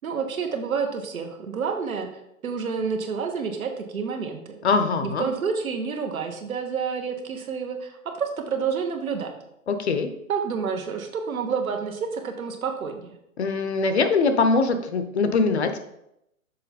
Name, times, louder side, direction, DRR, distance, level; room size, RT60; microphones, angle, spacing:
voice 1, 0.0-2.1 2.4-4.6 5.0-9.3 10.3-13.2, right 6 dB, 75° right, 4 dB, 1.4 m, -29 dB
voice 2, 4.6-5.3 9.7-10.1 13.4-15.8, left 4 dB, 50° left, 8 dB, 0.7 m, -22 dB
6.7 x 4.6 x 4.1 m, 0.81 s
hypercardioid pair, 170°, 42 cm